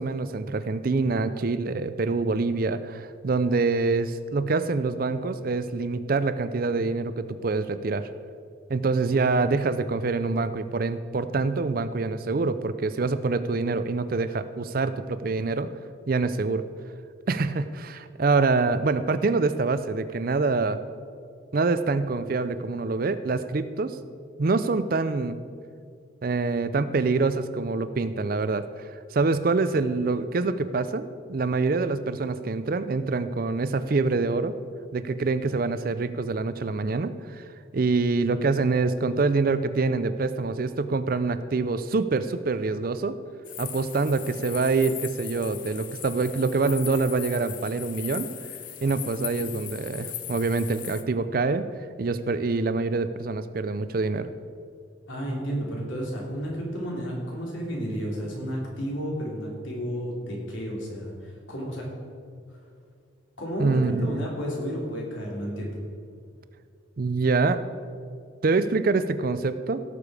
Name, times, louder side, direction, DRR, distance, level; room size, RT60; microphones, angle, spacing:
voice 1, 0.0-8.1 8.7-15.7 16.1-16.6 17.3-20.8 21.5-24.0 24.4-25.4 26.2-28.7 29.1-34.5 34.9-37.4 37.7-43.2 43.6-48.3 48.8-51.7 52.0-54.3 63.6-64.3 67.0-67.6 68.4-69.8, right 3 dB, 45° right, 12 dB, 0.4 m, -25 dB
sound 1, 43.4-51.0, left 12 dB, 40° left, 0.6 m, -39 dB
voice 2, 55.1-61.9 62.5-62.6 63.4-65.8, equal, 75° left, -3 dB, 3.1 m, -32 dB
17.0 x 6.9 x 4.9 m, 2.3 s
head